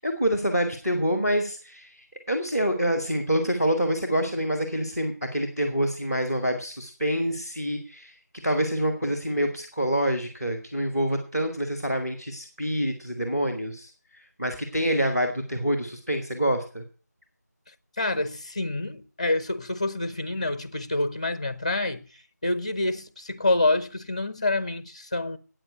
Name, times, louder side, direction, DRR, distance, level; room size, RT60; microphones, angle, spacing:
voice 1, 0.0-8.1 8.4-13.9 14.4-16.8, equal, 10° right, 1.3 m, -26 dB
voice 2, 18.0-22.0 22.4-25.4, left 2 dB, 25° left, 0.7 m, -27 dB
9.0 x 7.8 x 9.2 m
figure-of-eight pair, 170°, 9 cm